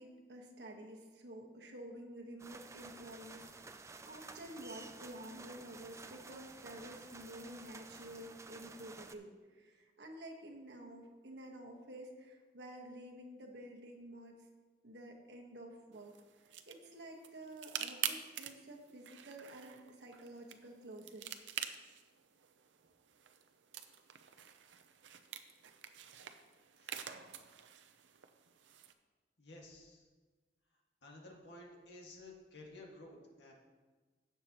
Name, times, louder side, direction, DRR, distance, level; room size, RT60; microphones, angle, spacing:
voice 1, 0.0-3.8 4.1-14.4 14.8-21.3, right 1 dB, 70° right, 1 dB, 1.4 m, -51 dB
sound 1, 2.4-9.1, right 3 dB, 15° right, 0.3 m, -53 dB
sound 2, 15.9-28.9, right 9 dB, 90° right, 0.6 m, -47 dB
voice 2, 29.4-30.1 31.0-33.5, left 2 dB, 70° left, -1 dB, 1.9 m, -54 dB
16.5 x 6.8 x 3.0 m, 1.4 s
head